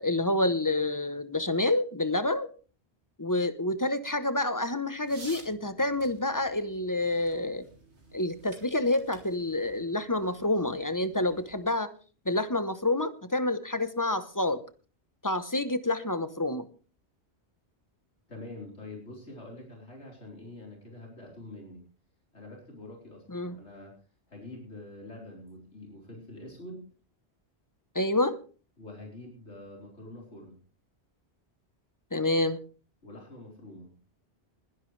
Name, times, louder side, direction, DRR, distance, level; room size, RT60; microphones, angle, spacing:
voice 1, 0.0-2.5 3.2-7.6 8.1-11.9 12.3-14.6 15.2-16.6 23.3-23.5 27.9-28.4 32.1-32.6, left 2 dB, 20° left, 11 dB, 0.9 m, -28 dB
sound 1, 5.0-11.7, right 2 dB, 85° right, 3.1 m, -53 dB
voice 2, 18.3-21.8 22.3-23.9 24.3-26.9 28.8-30.6 33.0-33.9, left 1 dB, 85° left, -1 dB, 4.7 m, -45 dB
21.0 x 11.5 x 3.3 m, 0.38 s
omnidirectional pair, 1.1 m